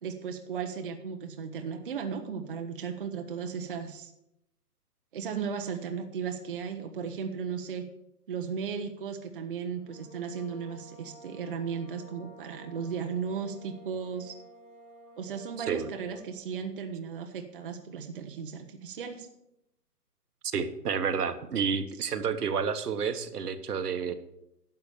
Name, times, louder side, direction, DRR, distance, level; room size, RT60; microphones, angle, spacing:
voice 1, 0.0-4.1 5.1-7.9 8.3-14.3 15.2-19.3, right 6 dB, 35° right, 5 dB, 0.8 m, -36 dB
sound 1, 9.7-16.4, right 1 dB, 25° left, 2.9 m, -52 dB
voice 2, 20.5-24.1, right 6 dB, 75° right, 9 dB, 1.3 m, -30 dB
11.0 x 6.9 x 6.9 m, 0.85 s
hypercardioid pair, 165°, 47 cm